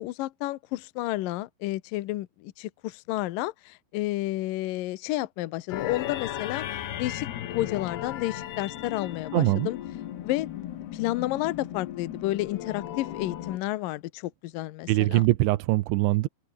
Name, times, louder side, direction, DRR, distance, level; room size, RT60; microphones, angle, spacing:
voice 1, 0.0-6.6 7.0-9.8 10.2-15.2, left 17 dB, 90° left, 1.9 m, -31 dB
sound 1, 5.7-13.6, left 12 dB, 65° left, 3.5 m, -36 dB
voice 2, 9.3-9.7 14.9-16.3, right 18 dB, 80° right, 3.2 m, -22 dB
omnidirectional pair, 5.4 m